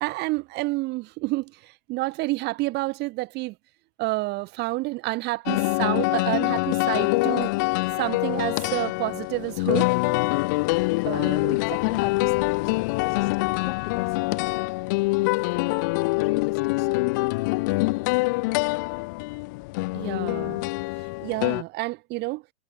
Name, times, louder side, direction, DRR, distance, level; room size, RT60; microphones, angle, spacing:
voice 1, 0.0-3.5 4.0-7.5 7.9-9.9 11.1-11.6 19.9-20.6 21.0-22.4, right 21 dB, 30° right, 1.4 m, -29 dB
sound 1, 5.5-21.6, left 25 dB, 20° left, 0.3 m, -25 dB
voice 2, 11.0-14.7 15.2-15.5 16.2-17.2, left 15 dB, 55° left, 6.0 m, -36 dB
hypercardioid pair, 135°, 35 cm